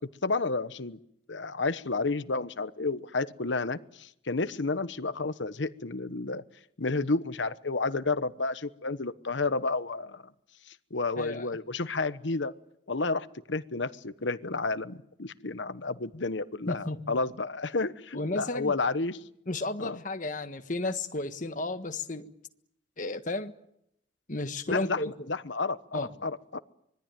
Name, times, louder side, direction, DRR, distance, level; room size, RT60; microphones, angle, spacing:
voice 1, 0.2-1.0 1.3-6.4 6.8-10.2 10.7-12.5 12.9-19.2 19.8-20.0 24.7-26.6, left 3 dB, 70° left, 1.1 m, -31 dB
voice 2, 11.2-11.5 16.7-17.2 18.1-18.7 19.5-22.3 23.0-23.5 24.3-25.3 25.9-26.1, left 2 dB, 40° left, 1.5 m, -33 dB
25.5 x 21.5 x 9.1 m
head